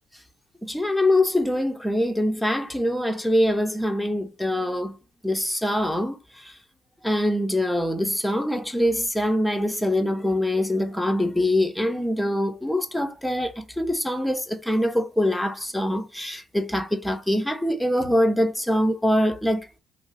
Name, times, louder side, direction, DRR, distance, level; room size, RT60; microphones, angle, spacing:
voice 1, 0.6-4.9 5.2-6.2 7.0-19.7, left 1 dB, 5° left, 0.6 m, -24 dB
2.6 x 2.0 x 3.8 m
supercardioid pair, 65°, 0 cm